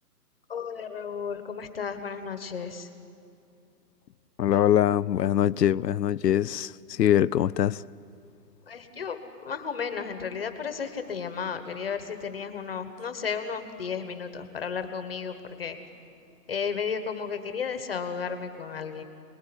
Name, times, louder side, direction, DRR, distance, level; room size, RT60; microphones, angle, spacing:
voice 1, 0.5-2.9 8.7-15.8 16.5-19.0, left 6 dB, 35° left, 1.5 m, -33 dB
voice 2, 4.4-7.8, left 11 dB, 75° left, 0.7 m, -23 dB
29.0 x 20.5 x 9.9 m
hypercardioid pair, 175°, 49 cm